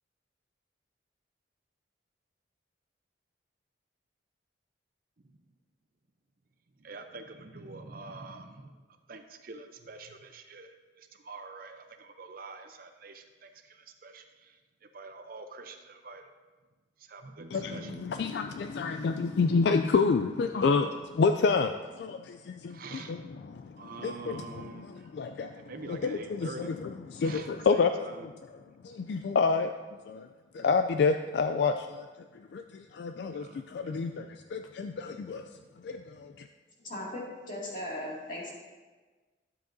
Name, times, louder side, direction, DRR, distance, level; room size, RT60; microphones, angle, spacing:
voice 1, 6.8-8.8 9.1-16.2 17.1-18.1 22.7-23.2 23.8-25.1 25.5-26.7 27.2-28.3 33.3-34.0, right 3 dB, 50° right, 6 dB, 0.6 m, -46 dB
voice 2, 17.5-27.9 28.2-28.3 28.8-29.7 30.1-30.3 30.5-32.1 32.3-35.5 35.8-36.5, left 4 dB, 60° left, 7 dB, 0.3 m, -29 dB
voice 3, 36.8-38.5, left 1 dB, 45° left, -4 dB, 2.3 m, -38 dB
12.0 x 7.7 x 2.6 m, 1.3 s
head